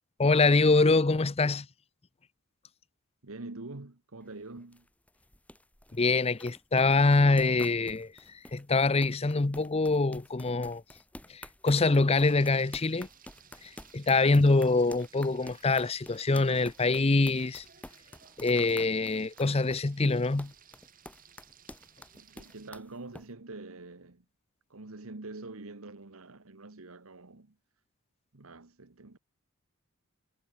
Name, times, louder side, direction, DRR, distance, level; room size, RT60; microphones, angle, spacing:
voice 1, 0.2-1.7 5.9-8.1 8.5-10.8 11.3-13.1 13.6-17.6 18.4-20.5, left 3 dB, 25° left, 0.6 m, -25 dB
voice 2, 3.2-4.8 22.1-24.2 24.7-27.5 28.3-29.2, right 2 dB, 70° right, 1.4 m, -45 dB
sound 1, 4.2-23.2, left 1 dB, 5° left, 5.0 m, -50 dB
Frying (food), 12.1-22.7, right 8 dB, 40° right, 2.6 m, -58 dB
head